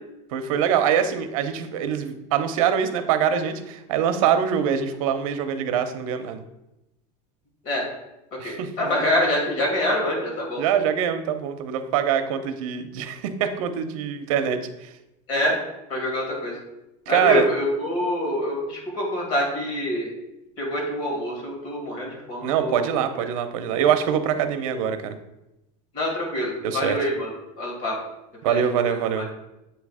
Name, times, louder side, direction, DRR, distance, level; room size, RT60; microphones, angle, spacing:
voice 1, 0.3-6.4 8.4-8.7 10.6-14.9 17.1-17.5 22.4-25.2 26.6-27.0 28.4-29.3, right 8 dB, 70° right, 9 dB, 0.8 m, -24 dB
voice 2, 8.3-10.6 15.3-15.6 15.9-16.6 17.1-20.1 20.6-22.9 25.9-27.3 27.6-28.0 28.4-28.6 28.9-29.2, left 1 dB, 45° left, -1 dB, 2.6 m, -25 dB
8.0 x 3.2 x 4.8 m, 0.91 s
supercardioid pair, 160°, 18 cm